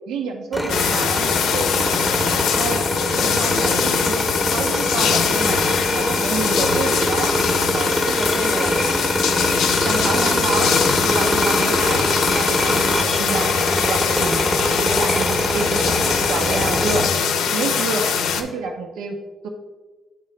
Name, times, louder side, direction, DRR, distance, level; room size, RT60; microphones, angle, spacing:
voice 1, 0.1-1.7 2.5-2.9 3.1-4.3 4.5-5.6 5.9-7.3 7.7-9.0 9.8-10.7 11.0-13.5 13.8-14.4 14.8-17.1 17.5-18.1 18.4-19.2 19.4-19.5, right 4 dB, 80° right, 4 dB, 0.6 m, -28 dB
sound 1, 0.5-17.1, equal, 5° left, 0.7 m, -23 dB
sound 2, 0.7-18.4, left 7 dB, 85° left, 0.6 m, -22 dB
8.7 x 3.7 x 3.2 m, 1.2 s
cardioid pair, 90°, 0 cm